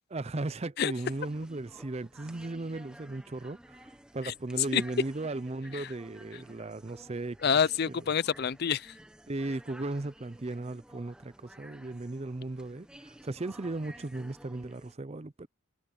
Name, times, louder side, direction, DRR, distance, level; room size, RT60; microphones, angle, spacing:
voice 1, 0.1-3.9 4.1-7.4 9.3-15.5, right 2 dB, 30° right, 0.5 m, -36 dB
sound 1, 0.9-14.9, equal, 5° right, 0.8 m, -54 dB
voice 2, 7.4-9.0, left 7 dB, 45° left, 0.5 m, -28 dB
head